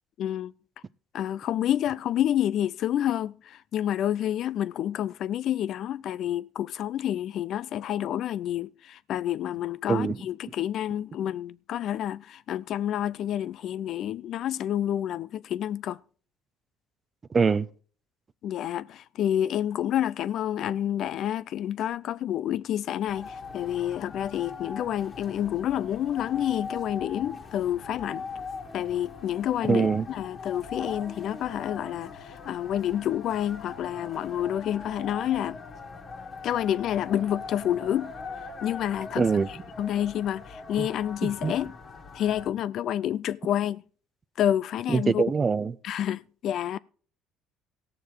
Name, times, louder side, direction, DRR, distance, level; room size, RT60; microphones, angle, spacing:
voice 1, 0.2-0.5 1.1-16.0 18.4-28.3 28.7-35.6 36.4-38.1 38.6-41.7 42.1-43.8 44.4-45.2 45.8-46.8, left 11 dB, 60° left, 0.4 m, -29 dB
voice 2, 17.3-17.7 29.7-30.1 39.2-39.5 40.8-40.9 41.2-41.5 44.9-45.7, right 5 dB, 30° right, 0.5 m, -23 dB
sound 1, 23.1-42.5, left 4 dB, 40° left, 1.9 m, -41 dB
16.0 x 6.8 x 4.6 m
supercardioid pair, 80°, 0 cm